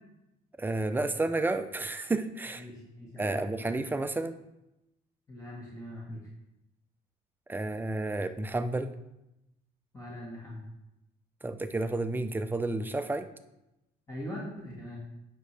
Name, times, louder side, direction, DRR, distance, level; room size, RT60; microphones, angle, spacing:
voice 1, 0.6-2.6 3.2-4.4 7.5-8.9 11.4-13.3, right 2 dB, 10° right, 9 dB, 0.5 m, -31 dB
voice 2, 2.6-3.5 5.3-6.3 9.9-10.6 14.1-15.0, equal, 20° left, -5 dB, 1.9 m, -41 dB
9.0 x 6.2 x 3.4 m, 0.90 s
cardioid pair, 110°, 17 cm